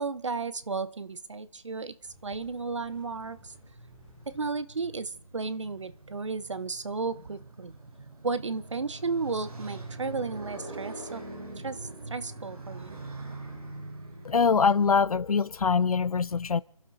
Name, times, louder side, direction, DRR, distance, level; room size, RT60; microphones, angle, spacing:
voice 1, 0.0-1.9 2.2-3.5 4.3-7.7 8.2-11.2 11.6-13.0, right 4 dB, 50° right, 1.0 m, -33 dB
sound 1, 2.0-4.5, left 1 dB, 10° right, 4.6 m, -57 dB
Motorcycle, 2.1-14.6, right 2 dB, 75° right, 6.0 m, -44 dB
voice 2, 14.2-16.6, left 5 dB, 70° left, 0.6 m, -23 dB
30.0 x 12.0 x 4.1 m
hypercardioid pair, 180°, 19 cm